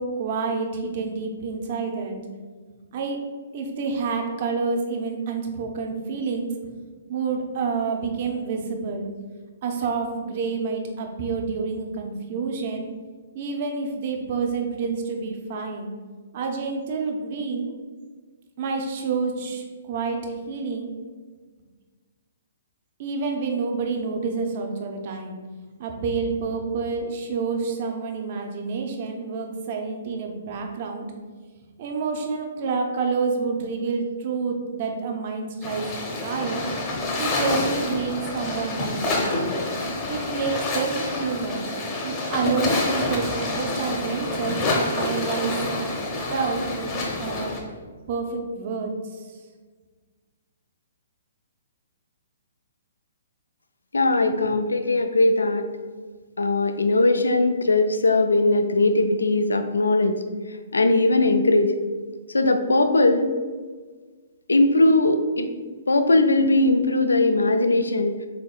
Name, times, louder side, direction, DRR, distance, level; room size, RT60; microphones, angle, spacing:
voice 1, 0.0-2.2 2.9-3.2 3.5-6.5 7.1-9.1 9.6-12.9 13.3-15.9 16.3-17.7 18.6-20.2 20.5-20.9 23.0-25.4 25.8-31.1 31.8-36.6 37.2-39.6 40.1-41.6 42.0-45.9 46.3-47.5 48.1-49.2, right 4 dB, 50° right, 3 dB, 0.6 m, -28 dB
sound 1, 35.6-47.6, left 2 dB, 30° left, 0.8 m, -27 dB
voice 2, 53.9-55.7 56.4-60.2 60.7-61.8 62.3-63.3 64.5-65.5 65.9-68.1, left 2 dB, 85° left, 7 dB, 0.3 m, -20 dB
3.5 x 3.4 x 2.3 m, 1.4 s
hypercardioid pair, 130°, 0 cm